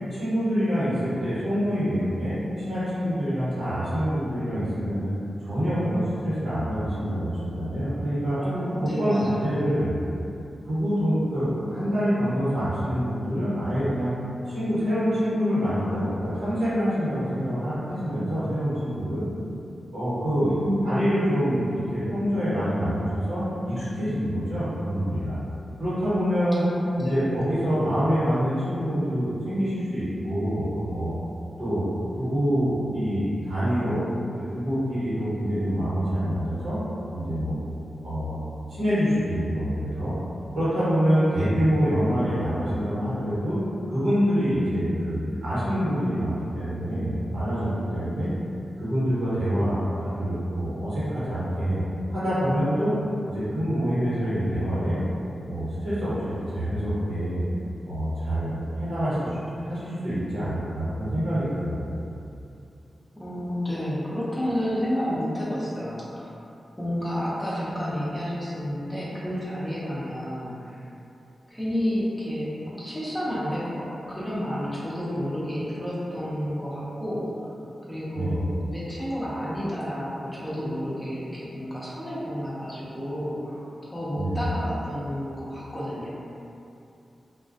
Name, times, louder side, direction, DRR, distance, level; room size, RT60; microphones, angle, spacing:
voice 1, 0.1-5.1 5.4-8.4 8.8-10.0 10.6-14.1 14.4-19.2 19.9-20.5 20.8-25.4 25.8-26.6 27.0-31.1 31.6-31.9 32.1-34.0 34.3-36.8 37.1-37.6 38.0-38.4 38.7-40.1 40.5-43.6 43.9-48.3 48.8-51.8 52.1-52.9 53.2-55.0 55.5-57.4 57.9-61.9 78.1-78.5 84.1-84.5, equal, 85° right, -12 dB, 1.1 m, -26 dB
voice 2, 8.4-9.5 10.7-10.8 20.4-21.1 26.6-27.3 41.3-41.5 63.1-66.4 66.8-70.8 71.5-77.6 77.8-86.1, equal, 10° left, -8 dB, 0.5 m, -30 dB
2.3 x 2.1 x 2.5 m, 2.7 s
wide cardioid pair, 95°, 0 cm